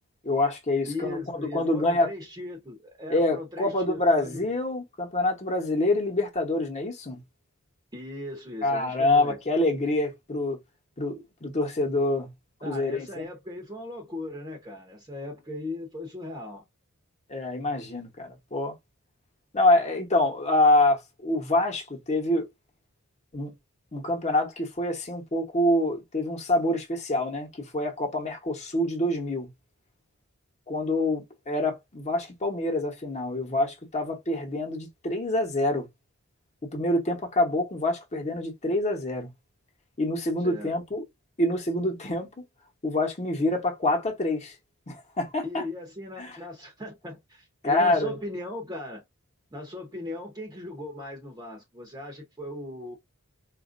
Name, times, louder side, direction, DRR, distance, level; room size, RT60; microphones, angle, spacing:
voice 1, 0.2-1.2 1.5-2.1 3.1-7.2 8.6-10.6 11.0-12.3 12.6-13.3 17.3-18.7 19.5-22.5 23.3-23.5 23.9-29.5 30.7-35.9 36.7-39.3 40.0-41.0 41.4-42.3 42.8-44.5 44.9-45.6 46.2-46.3 47.6-48.1, left 2 dB, 30° left, 1.0 m, -26 dB
voice 2, 0.9-4.4 7.9-9.4 12.6-16.6 40.4-40.7 45.4-49.0 49.5-53.0, left 2 dB, 15° right, 0.8 m, -38 dB
4.0 x 2.5 x 2.5 m
head